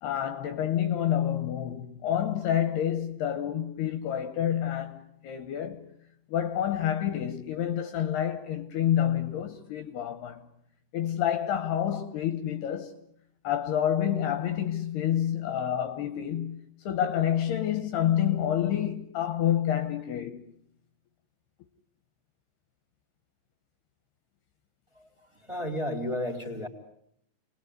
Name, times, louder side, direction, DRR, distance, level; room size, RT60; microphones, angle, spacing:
voice 1, 0.0-5.9 6.3-10.4 10.9-12.9 13.4-20.4, left 10 dB, 70° left, 3.0 m, -28 dB
voice 2, 24.9-26.7, left 1 dB, 5° right, 3.4 m, -33 dB
30.0 x 20.5 x 9.6 m
omnidirectional pair, 5.3 m